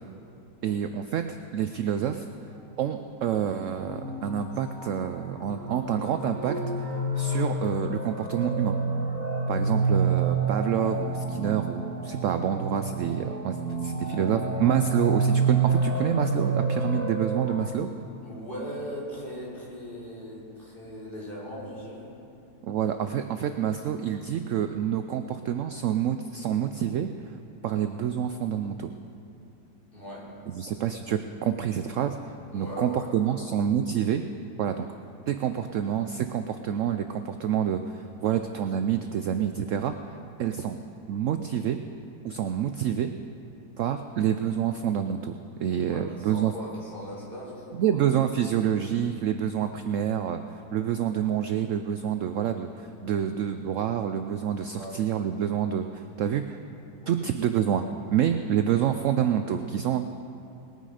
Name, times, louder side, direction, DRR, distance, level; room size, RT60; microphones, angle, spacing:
voice 1, 0.6-1.2 1.5-2.3 2.8-8.8 9.5-17.9 22.7-27.1 27.6-28.9 30.5-34.2 34.6-34.9 35.3-39.9 40.4-40.8 41.1-41.8 42.2-43.1 43.8-45.3 45.6-46.5 47.7-56.6 57.1-57.9 58.1-60.1, right 9 dB, 70° right, 8 dB, 0.7 m, -27 dB
sound 1, 3.0-17.7, right 4 dB, 55° right, 1.8 m, -29 dB
voice 2, 18.2-22.1 29.9-30.3 32.5-33.5 45.9-48.0 54.8-54.9 57.2-57.3, equal, 30° left, -7 dB, 3.8 m, -39 dB
20.5 x 9.2 x 5.0 m, 2.8 s
omnidirectional pair, 1.8 m